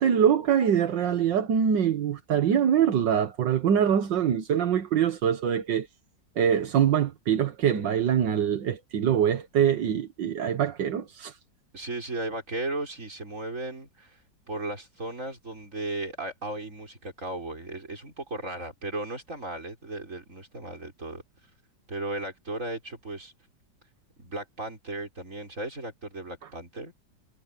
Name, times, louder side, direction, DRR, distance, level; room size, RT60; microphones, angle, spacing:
voice 1, 0.0-5.9 6.4-11.4, right 8 dB, 75° right, 1.9 m, -24 dB
voice 2, 11.7-14.2 14.5-21.2 21.9-23.3 24.2-26.9, right 2 dB, 40° right, 6.1 m, -35 dB
omnidirectional pair, 2.0 m